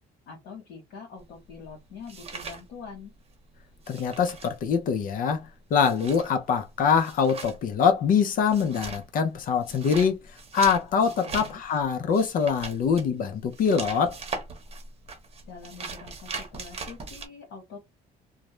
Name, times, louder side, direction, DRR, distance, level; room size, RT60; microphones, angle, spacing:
voice 1, 0.3-3.1 11.0-11.6 15.4-17.8, left 5 dB, 85° left, 1.0 m, -44 dB
sound 1, 1.2-3.3 3.6-17.3, right 4 dB, 35° right, 0.8 m, -40 dB
voice 2, 3.9-10.2 10.5-14.2, left 6 dB, 55° left, 0.5 m, -24 dB
2.3 x 2.0 x 3.0 m
cardioid pair, 110°, 17 cm